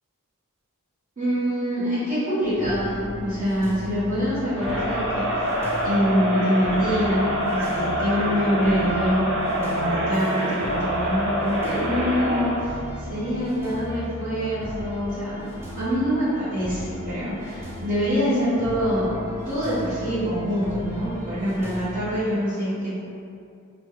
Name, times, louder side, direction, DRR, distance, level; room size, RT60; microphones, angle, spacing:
voice 1, 1.2-5.5 5.8-23.0, equal, 35° right, -17 dB, 1.2 m, -25 dB
sound 1, 2.4-22.2, equal, 10° right, 0.4 m, -36 dB
Crowd, 4.5-12.6, equal, 60° right, 0.6 m, -26 dB
3.0 x 2.1 x 3.1 m, 2.5 s
head